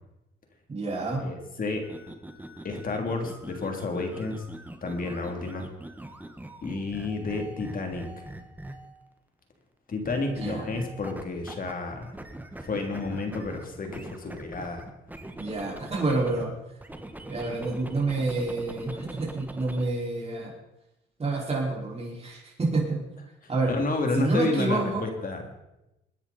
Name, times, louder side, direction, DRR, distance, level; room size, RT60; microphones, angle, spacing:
voice 1, 0.7-1.3 10.4-10.7 15.4-16.5 17.3-20.5 21.2-23.0 23.5-23.7 24.1-25.1, right 3 dB, 30° right, -3 dB, 5.1 m, -28 dB
voice 2, 1.2-1.8 2.6-4.4 4.8-5.7 6.6-8.3 9.9-12.2 12.6-14.9 18.9-19.0 23.4-25.5, left 3 dB, 45° left, 3 dB, 3.1 m, -31 dB
sound 1, 1.8-9.0 10.0-11.7 12.0-16.4 16.8-19.9, right 1 dB, 10° right, 1.5 m, -42 dB
22.0 x 10.0 x 4.3 m, 0.93 s
cardioid pair, 90°, 20 cm